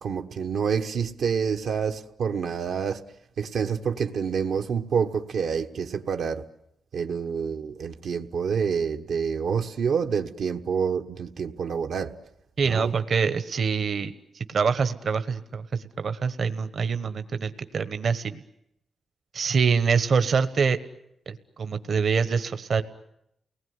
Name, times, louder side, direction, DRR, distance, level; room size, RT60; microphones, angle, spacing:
voice 1, 0.0-3.0 3.4-6.5 6.9-12.2 12.6-12.9, right 6 dB, 85° right, 1.2 m, -27 dB
voice 2, 12.6-14.1 14.5-15.6 16.0-18.4 19.3-20.8 21.3-22.8, right 5 dB, 65° right, 1.2 m, -25 dB
29.0 x 19.5 x 9.5 m
cardioid pair, 90°, 0 cm